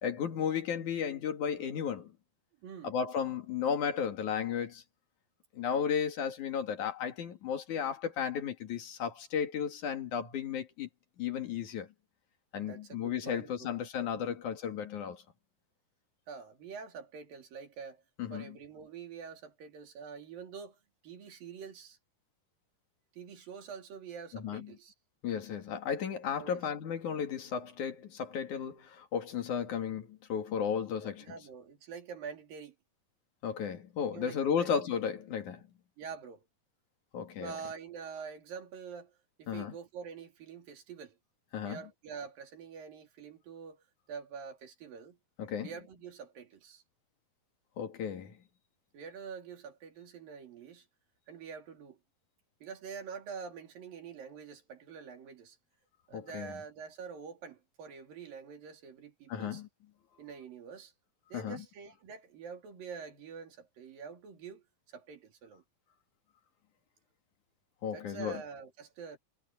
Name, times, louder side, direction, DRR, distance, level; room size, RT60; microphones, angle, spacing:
voice 1, 0.0-2.1 2.8-4.8 5.5-10.9 11.2-11.9 12.5-15.2 18.2-18.6 24.3-24.7 25.2-31.3 33.4-35.6 37.1-37.5 39.5-39.7 41.5-41.8 45.4-45.7 47.8-48.4 56.1-56.5 59.3-59.7 61.3-61.6 67.8-68.4, left 7 dB, 65° left, 3.4 m, -34 dB
voice 2, 2.6-3.0 12.7-13.7 14.1-14.4 16.3-18.0 18.3-22.0 23.1-24.9 26.4-26.6 31.0-32.8 34.0-34.7 36.0-36.5 37.4-41.2 41.6-45.2 45.6-46.8 48.9-50.9 51.3-52.0 52.6-55.6 56.1-59.6 60.2-60.9 61.3-64.6 64.9-65.6 67.9-69.2, right 6 dB, 90° right, 4.8 m, -46 dB
omnidirectional pair, 3.9 m